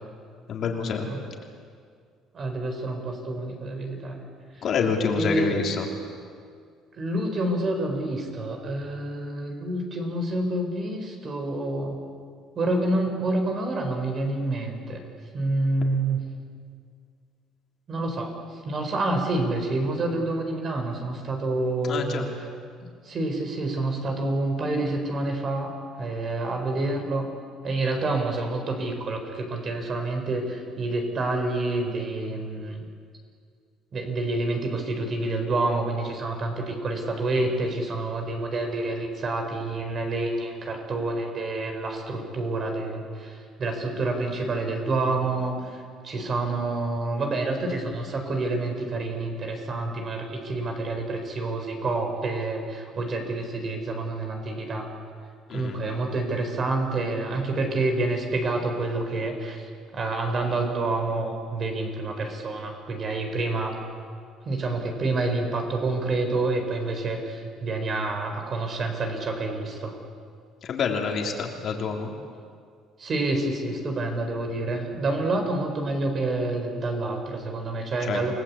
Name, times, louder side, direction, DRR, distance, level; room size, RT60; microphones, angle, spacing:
voice 1, 0.5-1.1 4.6-5.9 21.8-22.3 55.5-55.8 70.6-72.1 78.1-78.2, left 5 dB, 50° left, 1 dB, 3.3 m, -27 dB
voice 2, 2.3-4.2 4.5-4.7 5.1-5.6 6.9-12.0 12.5-15.0 15.3-16.2 17.9-22.3 23.0-25.7 26.0-27.3 27.6-32.9 33.9-54.9 55.5-63.7 64.4-70.0 73.0-78.3, right 2 dB, 35° right, 4 dB, 4.9 m, -28 dB
28.5 x 19.5 x 8.7 m, 2.2 s
cardioid pair, 135°, 0 cm